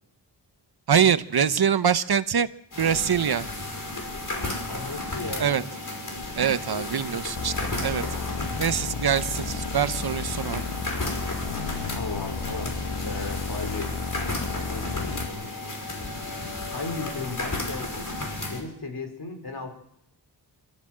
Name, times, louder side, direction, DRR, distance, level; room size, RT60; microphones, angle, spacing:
voice 1, 0.9-2.5 2.8-3.5 5.4-5.6 6.4-8.0 8.6-10.6, right 8 dB, 60° right, 13 dB, 0.9 m, -24 dB
sound 1, 2.7-18.6, left 2 dB, 45° left, 5.7 m, -33 dB
voice 2, 4.7-5.6 6.7-7.0 8.1-9.0 11.9-13.9 14.6-15.5 16.3-18.1 18.5-19.7, left 3 dB, 60° left, 5 dB, 4.6 m, -36 dB
sound 2, 7.4-15.3, left 5 dB, 80° left, 1.7 m, -33 dB
27.0 x 14.0 x 7.6 m, 0.74 s
wide cardioid pair, 90°, 43 cm